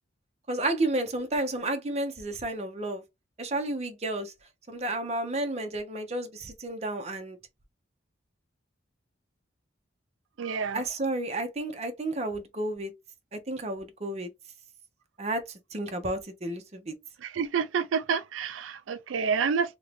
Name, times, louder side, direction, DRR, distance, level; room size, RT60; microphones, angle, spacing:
voice 1, 0.5-3.0 3.4-4.3 4.7-7.4 10.7-12.9 13.3-14.3 15.2-16.9, right 2 dB, 35° right, 0.6 m, -31 dB
voice 2, 10.4-10.8 17.2-19.8, right 6 dB, 90° right, 0.4 m, -28 dB
2.9 x 2.6 x 3.3 m
head